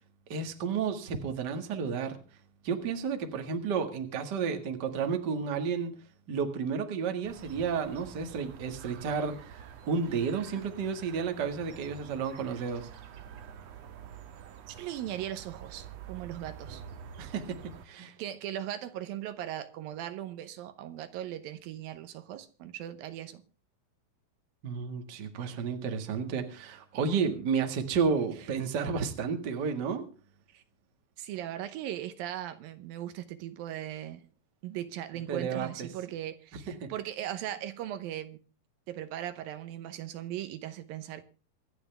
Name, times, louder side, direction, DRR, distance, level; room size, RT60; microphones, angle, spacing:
voice 1, 0.3-2.2 2.6-5.9 6.3-9.5 9.9-12.9 17.2-18.1 24.6-30.1 35.3-35.9 36.7-36.9, right 6 dB, 40° right, 1.7 m, -32 dB
sound 1, 7.2-17.8, right 8 dB, 60° right, 2.0 m, -47 dB
voice 2, 14.7-16.8 17.9-23.4 28.4-28.5 30.5-30.6 31.2-34.2 34.6-38.4 38.9-41.2, right 12 dB, 80° right, 2.6 m, -38 dB
25.5 x 9.5 x 3.4 m
omnidirectional pair, 4.2 m